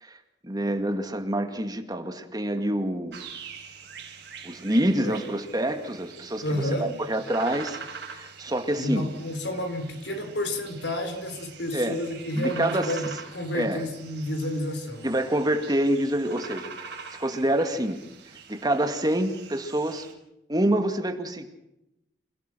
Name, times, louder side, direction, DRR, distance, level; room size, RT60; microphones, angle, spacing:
voice 1, 0.4-3.2 4.4-7.8 8.1-9.1 11.7-12.0 12.3-12.9 13.5-13.8 15.0-18.0 18.5-20.1 20.5-21.5, right 1 dB, 20° right, 6 dB, 2.2 m, -27 dB
sound 1, 3.1-20.1, right 5 dB, 70° right, 5.1 m, -44 dB
voice 2, 6.4-7.0 8.7-15.1, left 1 dB, 75° left, 7 dB, 4.1 m, -30 dB
28.0 x 17.5 x 6.3 m, 0.86 s
head